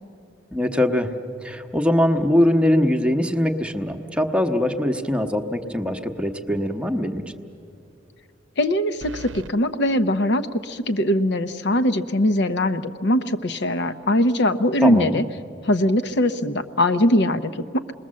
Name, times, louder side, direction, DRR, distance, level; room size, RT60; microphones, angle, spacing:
voice 1, 0.5-1.1 1.4-7.2 14.8-15.2, left 1 dB, 5° right, 4 dB, 1.0 m, -22 dB
sound 1, 6.0-6.4 6.7-6.8 9.0-9.5, right 2 dB, 80° right, 0.7 m, -39 dB
voice 2, 8.6-15.2 15.6-17.8, left 1 dB, 60° left, 11 dB, 0.8 m, -21 dB
27.5 x 20.5 x 7.5 m, 2.8 s
head